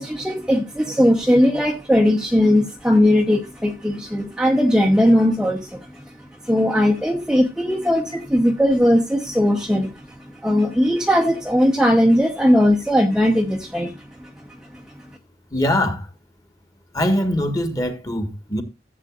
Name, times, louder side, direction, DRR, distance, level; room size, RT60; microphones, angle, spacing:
voice 1, 0.0-6.1 6.4-10.1 10.4-14.3 14.7-14.8, equal, 5° right, 0.8 m, -18 dB
voice 2, 15.5-16.1 16.9-18.6, left 1 dB, 20° left, 1.7 m, -22 dB
14.5 x 8.1 x 2.5 m
head